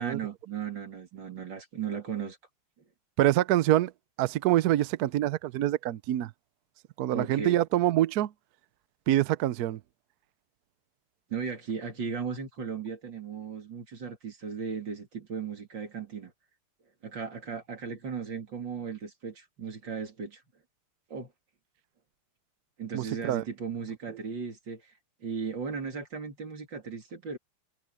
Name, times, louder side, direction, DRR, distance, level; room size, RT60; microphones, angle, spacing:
voice 1, 0.0-2.4 7.1-7.6 11.3-16.3 17.0-20.4 21.1-21.3 22.8-24.9 25.2-27.4, right 6 dB, 55° right, 3.6 m, -36 dB
voice 2, 3.2-3.9 4.2-6.3 7.0-8.3 9.1-9.8 22.9-23.4, right 13 dB, 75° right, 0.8 m, -25 dB
omnidirectional pair, 2.4 m